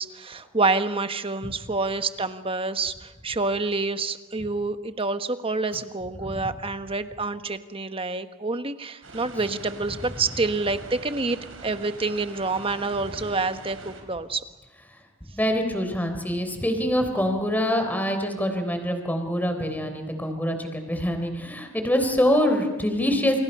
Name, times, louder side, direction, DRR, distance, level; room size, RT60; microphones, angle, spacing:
voice 1, 0.0-14.4, right 3 dB, 25° right, 9 dB, 1.2 m, -27 dB
sound 1, 9.0-14.0, right 2 dB, 75° right, 5.0 m, -43 dB
voice 2, 15.3-23.4, equal, 10° left, 6 dB, 3.7 m, -25 dB
29.0 x 29.0 x 5.6 m, 1.1 s
head